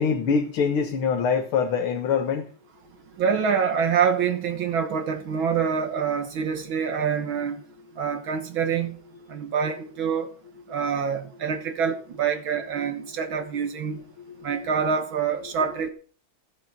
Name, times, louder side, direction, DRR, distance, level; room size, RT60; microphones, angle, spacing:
voice 1, 0.0-2.5 14.2-14.5, left 6 dB, 75° left, 2.1 m, -24 dB
voice 2, 3.2-7.6 8.0-9.0 9.3-10.3 10.7-14.0 14.4-15.9, right 6 dB, 70° right, 2.0 m, -26 dB
15.0 x 7.7 x 5.9 m
omnidirectional pair, 2.3 m